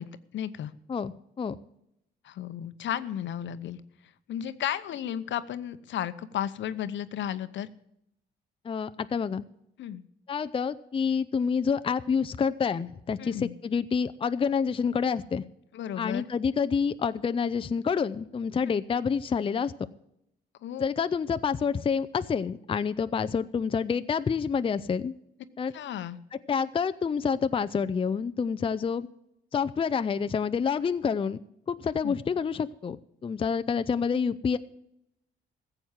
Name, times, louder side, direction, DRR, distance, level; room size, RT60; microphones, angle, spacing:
voice 1, 0.0-0.7 2.2-3.8 4.3-7.7 9.8-10.0 13.2-13.5 15.7-16.2 20.6-20.9 25.7-26.2 32.0-32.2, left 10 dB, 70° left, 13 dB, 0.8 m, -34 dB
voice 2, 0.9-1.6 8.6-9.5 10.3-15.4 16.0-19.7 20.8-25.1 25.6-25.7 26.3-29.1 29.5-31.4 31.7-33.0 33.2-34.6, left 6 dB, 25° left, 12 dB, 0.5 m, -28 dB
14.5 x 7.9 x 7.3 m, 0.78 s
cardioid pair, 90°, 20 cm